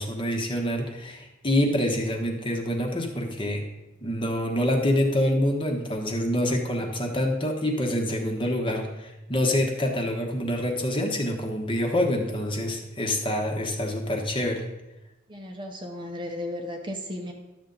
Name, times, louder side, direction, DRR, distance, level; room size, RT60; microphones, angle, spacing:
voice 1, 0.0-3.6 4.0-14.6, left 1 dB, 25° left, 2 dB, 1.2 m, -26 dB
voice 2, 6.8-7.2 15.3-17.3, left 1 dB, 25° right, 2 dB, 0.9 m, -35 dB
11.5 x 7.0 x 3.9 m, 0.97 s
head